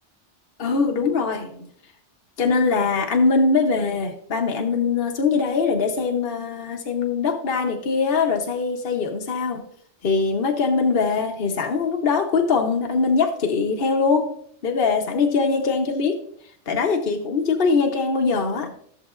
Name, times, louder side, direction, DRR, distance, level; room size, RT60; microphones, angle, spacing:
voice 1, 0.6-1.7 2.4-9.7 10.0-14.3 14.6-16.2 16.7-18.7, left 4 dB, 55° left, 2 dB, 1.1 m, -22 dB
14.5 x 7.1 x 2.5 m, 0.64 s
omnidirectional pair, 1.2 m